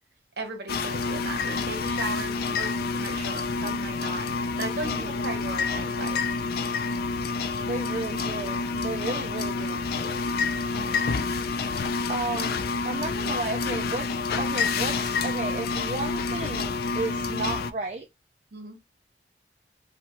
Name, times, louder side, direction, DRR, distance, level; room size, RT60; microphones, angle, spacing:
voice 1, 0.4-6.5 10.7-11.1 18.5-18.8, right 3 dB, 60° right, 0.8 m, -37 dB
sound 1, 0.7-17.7, left 4 dB, 55° left, 0.3 m, -28 dB
voice 2, 4.8-5.2 7.6-10.2 10.8-11.3 12.1-18.1, right 3 dB, 40° right, 0.4 m, -34 dB
2.6 x 2.2 x 2.9 m
head